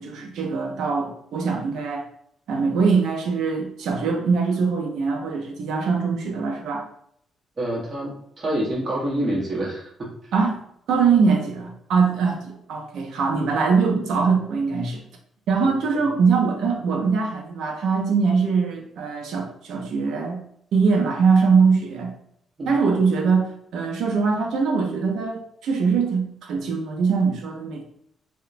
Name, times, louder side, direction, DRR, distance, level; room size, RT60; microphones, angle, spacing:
voice 1, 0.0-2.0 2.5-6.9 10.3-10.6 10.9-15.0 15.5-20.4 20.7-22.1 22.7-23.4 23.7-27.8, right 5 dB, 75° right, 2 dB, 0.5 m, -22 dB
voice 2, 7.6-10.1 15.6-16.0 22.6-22.8, right 1 dB, 40° right, -4 dB, 1.0 m, -27 dB
2.9 x 2.1 x 2.5 m, 0.69 s
cardioid pair, 90°, 0 cm